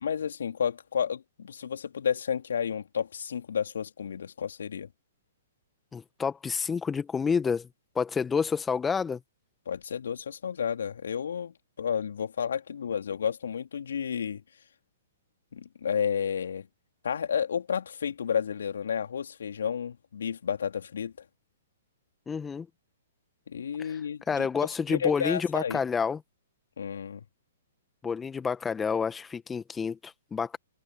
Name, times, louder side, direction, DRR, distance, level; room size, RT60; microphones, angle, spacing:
voice 1, 0.0-4.9 9.7-11.5 11.8-14.4 15.5-16.7 17.0-21.1 23.5-25.8 26.8-27.2, left 7 dB, 65° left, 3.6 m, -31 dB
voice 2, 5.9-7.7 7.9-9.2 22.3-22.7 23.8-24.0 24.3-26.2 28.0-30.6, left 6 dB, 10° left, 1.5 m, -29 dB
figure-of-eight pair, 115°, 0 cm